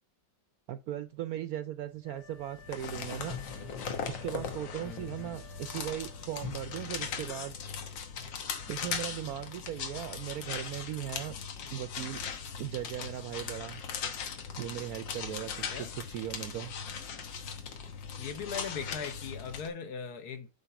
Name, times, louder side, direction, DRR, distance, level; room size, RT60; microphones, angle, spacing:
voice 1, 0.7-3.4 4.1-7.6 8.7-11.4 11.7-12.2 12.6-13.8 14.6-16.7, right 12 dB, 75° right, 0.8 m, -38 dB
Wind instrument woodwind instrument, 2.0-6.5, right 1 dB, 45° left, 4.9 m, -55 dB
sound 1, 2.4-19.7, left 6 dB, 85° left, 1.8 m, -39 dB
voice 2, 4.8-5.4 15.7-15.9 18.2-20.5, left 6 dB, 60° left, 1.4 m, -40 dB
8.1 x 4.0 x 4.8 m
omnidirectional pair, 2.0 m